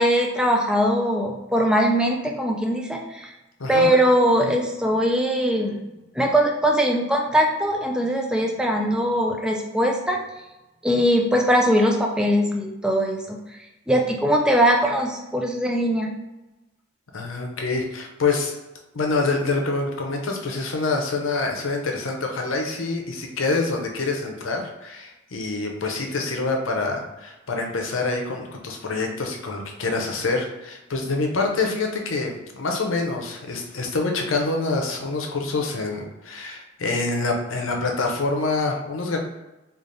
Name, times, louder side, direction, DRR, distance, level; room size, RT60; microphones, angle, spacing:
voice 1, 0.0-3.3 3.7-5.8 6.2-10.2 10.8-13.4 13.9-16.1, equal, 5° right, 1 dB, 0.4 m, -21 dB
voice 2, 17.1-18.5 18.9-39.2, left 3 dB, 80° left, 2 dB, 0.7 m, -26 dB
3.3 x 2.4 x 3.9 m, 1.0 s
head